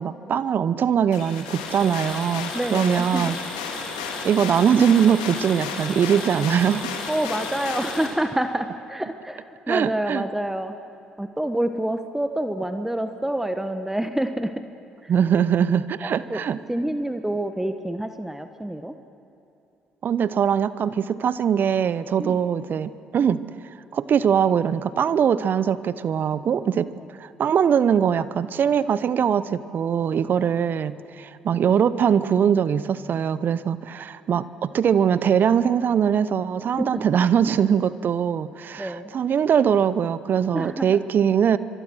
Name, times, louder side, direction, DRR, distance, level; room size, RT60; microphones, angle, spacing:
voice 1, 0.0-3.4 3.8-4.0 4.2-6.9 9.7-10.2 15.1-16.6 20.0-23.4 23.9-26.9 27.2-41.6, right 8 dB, 55° right, 16 dB, 0.8 m, -22 dB
sound 1, 1.1-8.1, left 5 dB, 85° left, 2.8 m, -32 dB
voice 2, 2.5-3.4 7.1-10.7 11.2-14.5 15.0-15.1 16.0-16.4 16.7-18.9 22.2-22.4 27.0-27.1 36.8-37.0 38.8-39.1 40.5-40.9, right 1 dB, 10° right, 8 dB, 1.3 m, -27 dB
25.0 x 24.0 x 6.3 m, 2.9 s
hypercardioid pair, 50°, 4 cm